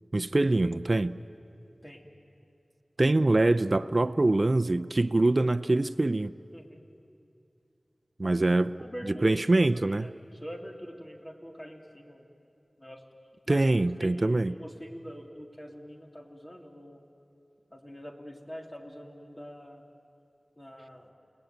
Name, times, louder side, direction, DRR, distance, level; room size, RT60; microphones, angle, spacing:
voice 1, 0.1-1.2 3.0-6.3 8.2-8.7 9.0-10.1 13.5-14.5, right 2 dB, 45° right, 10 dB, 0.5 m, -24 dB
voice 2, 1.8-2.2 6.5-6.9 8.2-8.4 8.8-12.3 12.8-13.0 13.5-13.6 14.0-17.0 17.7-19.9 20.6-21.1, equal, 25° left, 2 dB, 3.0 m, -44 dB
29.5 x 19.5 x 9.4 m, 2.6 s
wide cardioid pair, 50°, 0 cm